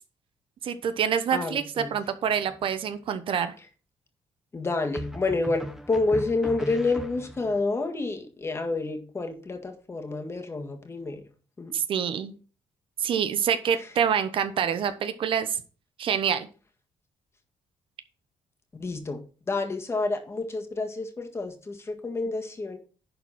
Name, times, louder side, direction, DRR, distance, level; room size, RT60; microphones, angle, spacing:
voice 1, 0.6-3.5 11.7-12.3 13.0-15.6 16.0-16.5, right 8 dB, 65° right, 0.9 m, -26 dB
voice 2, 1.3-2.0 4.5-11.2 11.6-11.7 18.8-19.2 19.5-22.8, left 3 dB, 25° left, 1.8 m, -29 dB
sound 1, 2.3-2.9 4.9-7.6, equal, 5° right, 1.0 m, -38 dB
11.0 x 4.3 x 5.8 m
cardioid pair, 100°, 10 cm